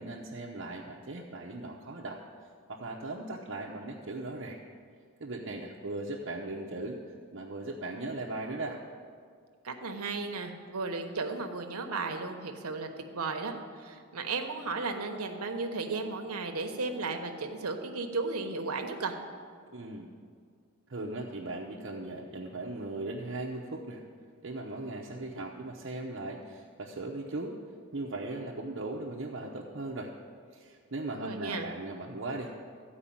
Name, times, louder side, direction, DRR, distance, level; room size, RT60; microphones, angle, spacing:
voice 1, 0.0-2.2 2.7-4.6 5.2-7.0 7.3-8.8 19.7-20.1 20.9-24.1 24.4-27.6 27.9-30.1 30.5-32.5, right 2 dB, 55° right, -3 dB, 0.8 m, -38 dB
voice 2, 9.6-19.1 31.2-31.7, right 3 dB, 90° right, 5 dB, 1.1 m, -35 dB
14.0 x 4.8 x 8.6 m, 2.1 s
head